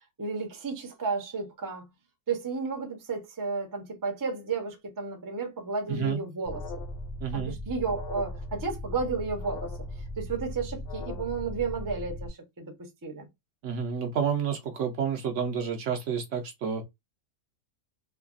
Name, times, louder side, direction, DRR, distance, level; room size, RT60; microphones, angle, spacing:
voice 1, 0.2-1.9 2.3-6.8 7.3-9.7 10.2-13.3, right 4 dB, 20° right, 0.5 m, -33 dB
voice 2, 5.9-6.2 7.2-7.5 13.6-16.8, right 7 dB, 65° right, 0.9 m, -29 dB
Alarm, 6.4-12.3, left 1 dB, 80° left, 0.5 m, -38 dB
3.1 x 2.2 x 2.4 m
omnidirectional pair, 1.5 m